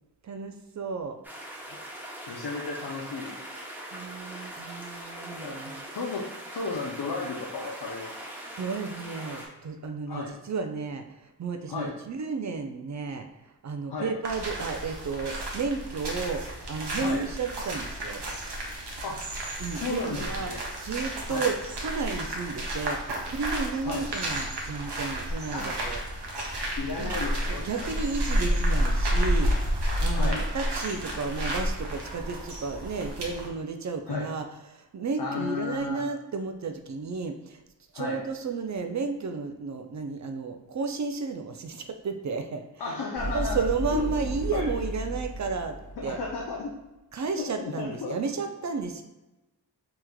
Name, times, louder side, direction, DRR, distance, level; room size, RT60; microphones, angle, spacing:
voice 1, 0.2-1.2 3.9-5.8 8.6-11.0 11.4-13.3 13.6-18.2 19.6-20.5 20.8-26.0 27.0-27.1 27.5-29.5 30.0-34.5 34.7-37.6 37.9-42.6 43.2-45.8 46.0-46.2 47.1-49.0, right 4 dB, 45° right, 6 dB, 0.4 m, -32 dB
sound 1, 1.2-9.5, right 1 dB, 5° right, 0.8 m, -41 dB
voice 2, 2.3-3.6 5.4-6.3 6.5-8.1 10.1-10.3 11.7-11.9 13.9-14.1 17.0-17.3 19.0-19.2 19.7-20.6 21.3-21.5 23.8-24.0 25.5-25.7 26.8-28.0 30.1-30.5 34.1-34.3 35.2-36.0 37.9-38.2 42.8-43.6 43.9-44.1 44.5-44.7 46.0-46.7 47.4-48.2, left 4 dB, 70° left, -2 dB, 0.6 m, -34 dB
sound 2, 14.2-33.5, equal, 80° right, 0.7 m, -31 dB
sound 3, 43.2-46.6, equal, 40° left, 1.1 m, -34 dB
3.5 x 3.0 x 2.2 m, 1.0 s
cardioid pair, 45°, 40 cm